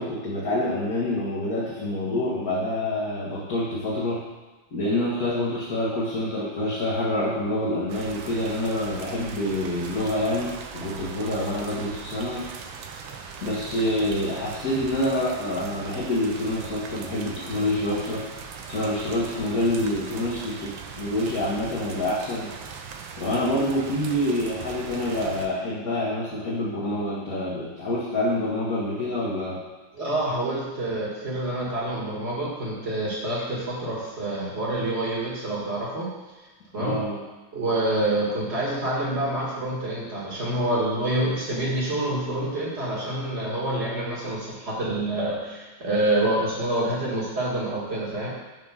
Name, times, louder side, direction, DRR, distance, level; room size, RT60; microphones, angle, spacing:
voice 1, 0.0-4.2 4.7-12.4 13.4-18.2 18.7-22.5 23.2-29.6 36.8-37.2, left 1 dB, 50° left, -8 dB, 1.5 m, -27 dB
sound 1, 7.9-25.5, right 6 dB, 75° right, 1.3 m, -39 dB
voice 2, 29.9-36.1 36.7-37.0 37.5-48.3, right 1 dB, 35° right, -6 dB, 1.6 m, -27 dB
4.7 x 4.6 x 5.5 m, 1.2 s
omnidirectional pair, 2.3 m